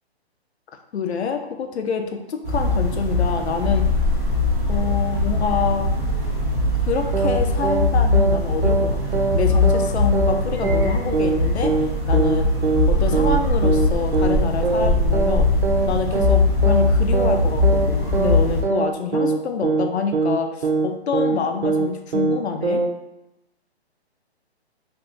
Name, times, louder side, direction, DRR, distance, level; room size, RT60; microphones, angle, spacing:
voice 1, 0.9-3.8 4.7-6.0 6.9-11.7 12.1-12.6 12.9-15.5 15.9-22.8, left 6 dB, 80° left, 5 dB, 0.6 m, -26 dB
sound 1, 2.4-18.6, left 2 dB, 15° right, 0.6 m, -21 dB
sound 2, 7.1-7.4 7.6-8.4 8.6-8.9 9.1-9.4 9.6-9.9 10.1-10.4 10.6-10.9 11.1-11.4 11.6-11.9 12.1-12.4 12.6-12.9 13.1-13.4 13.6-13.9 14.1-14.4 14.6-14.9 15.1-15.4 15.6-15.9 16.1-16.4 16.6-16.9 17.1-17.4 17.6-17.9 18.1-18.4 18.6-18.9 19.1-19.4 19.6-19.9 20.1-20.4 20.6-20.9 21.1-21.4 21.6-21.9 22.1-22.4 22.6-22.9, right 4 dB, 80° right, 0.6 m, -22 dB
2.6 x 2.4 x 3.8 m, 0.89 s
hypercardioid pair, 155°, 33 cm